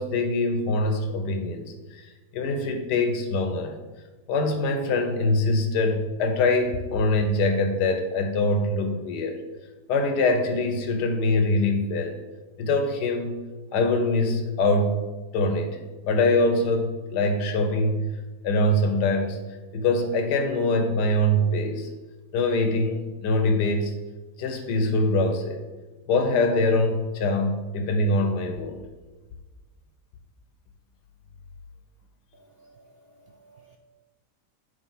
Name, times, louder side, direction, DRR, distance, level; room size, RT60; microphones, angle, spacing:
voice 1, 0.0-3.8 4.3-9.4 9.9-12.2 12.6-13.4 13.7-15.0 15.3-15.8 16.1-18.1 18.4-19.4 19.7-21.9 22.3-23.9 24.4-25.6 26.1-28.8, left 2 dB, 80° left, 6 dB, 1.5 m, -23 dB
voice 2, 32.3-33.8, right 2 dB, 60° right, 1 dB, 0.6 m, -56 dB
9.4 x 3.3 x 5.4 m, 1.2 s
omnidirectional pair, 1.8 m